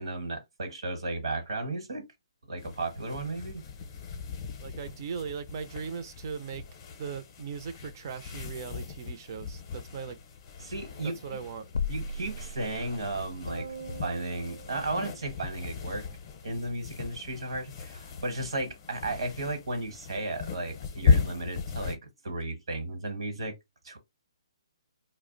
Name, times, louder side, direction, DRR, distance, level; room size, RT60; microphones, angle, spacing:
voice 1, 0.0-2.0 2.5-3.6 10.6-11.2 11.9-13.7 14.0-16.0 16.4-23.5 23.8-24.0, right 2 dB, 70° right, 1.1 m, -34 dB
sound 1, 2.6-22.0, left 5 dB, 30° left, 0.7 m, -35 dB
voice 2, 4.6-6.6 7.0-10.2 11.0-11.7, right 6 dB, 40° right, 0.5 m, -38 dB
sound 2, 11.7-13.3, left 4 dB, 75° left, 0.4 m, -34 dB
sound 3, 13.5-16.1, right 5 dB, 90° right, 0.7 m, -45 dB
2.4 x 2.0 x 3.7 m
hypercardioid pair, 150°, 3 cm